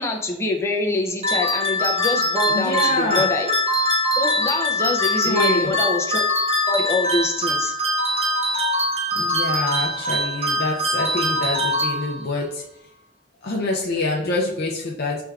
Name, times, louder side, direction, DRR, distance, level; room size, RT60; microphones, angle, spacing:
voice 1, 0.0-3.5 4.2-6.2 6.7-7.7, left 2 dB, 15° left, 0 dB, 0.6 m, -25 dB
sound 1, 1.2-12.4, left 1 dB, 35° right, 0.7 m, -22 dB
voice 2, 2.5-3.3 5.2-5.8 9.2-12.6 13.4-15.2, left 2 dB, 55° left, -2 dB, 0.5 m, -26 dB
5.9 x 3.3 x 2.4 m, 0.76 s
head